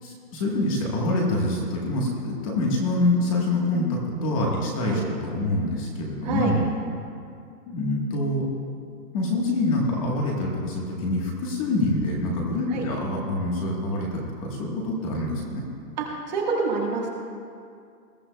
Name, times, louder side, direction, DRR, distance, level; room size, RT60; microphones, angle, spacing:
voice 1, 0.0-6.7 7.7-8.4 9.1-15.6, left 2 dB, 20° left, -2 dB, 1.3 m, -26 dB
voice 2, 6.2-6.5 12.7-12.8 16.0-17.1, right 4 dB, 25° right, -2 dB, 1.4 m, -27 dB
20.5 x 14.5 x 2.2 m, 2.3 s
hypercardioid pair, 175°, 48 cm